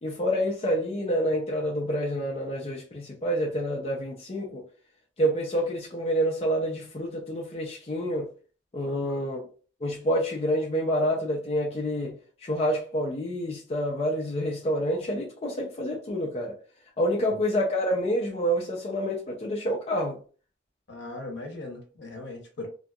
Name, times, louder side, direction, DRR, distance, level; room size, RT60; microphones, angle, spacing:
voice 1, 0.0-4.6 5.2-8.3 8.7-9.4 9.8-12.2 12.4-16.5 17.0-20.2, equal, 35° left, 0.5 m, -28 dB
voice 2, 8.8-9.2 17.2-17.3 20.9-22.7, left 2 dB, 65° left, 0.8 m, -39 dB
2.6 x 2.4 x 2.3 m
head